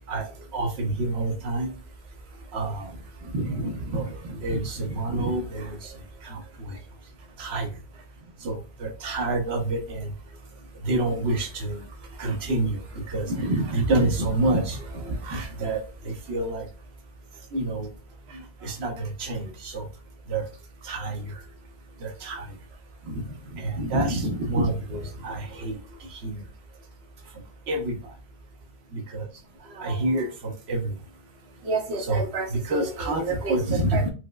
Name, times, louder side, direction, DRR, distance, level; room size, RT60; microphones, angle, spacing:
voice 1, 0.5-1.7 2.5-2.9 3.3-5.8 6.2-6.4 7.4-7.7 8.4-10.1 10.8-11.8 12.2-16.7 17.5-17.9 18.6-19.8 20.3-20.4 20.8-21.2 22.0-22.5 23.1-23.2 23.5-25.7 26.2-26.4 27.7-27.9 28.9-29.2 29.7-30.9 31.6-34.1, right 2 dB, 85° right, 4 dB, 1.0 m, -27 dB
4.4 x 2.0 x 2.2 m, 0.32 s
omnidirectional pair, 1.1 m